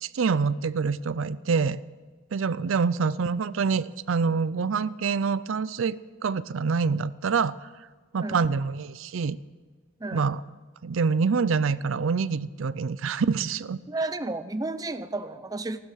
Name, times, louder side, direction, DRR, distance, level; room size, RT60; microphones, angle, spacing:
voice 1, 0.0-1.8 2.3-7.7 8.1-9.4 10.1-10.4 10.8-13.8, right 5 dB, 70° right, 16 dB, 0.5 m, -26 dB
voice 2, 8.2-8.5 10.0-10.4 13.9-15.8, right 2 dB, 20° right, 12 dB, 0.6 m, -32 dB
16.0 x 12.0 x 6.4 m, 1.4 s
head